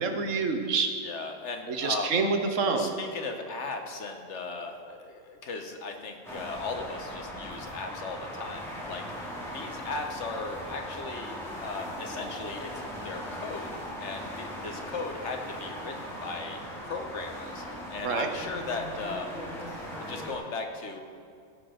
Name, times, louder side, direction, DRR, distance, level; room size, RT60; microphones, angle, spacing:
voice 1, 0.0-0.9 1.7-2.9 18.0-18.3, right 4 dB, 85° right, 5 dB, 1.3 m, -27 dB
voice 2, 1.0-2.1 2.7-9.0 9.5-12.7 13.0-13.7 14.0-16.6 16.8-17.6 17.9-19.4 20.0-21.0, left 3 dB, 70° left, 4 dB, 1.3 m, -37 dB
sound 1, 6.2-20.3, equal, ahead, 2.5 m, -39 dB
16.0 x 5.9 x 5.1 m, 2.4 s
omnidirectional pair, 1.3 m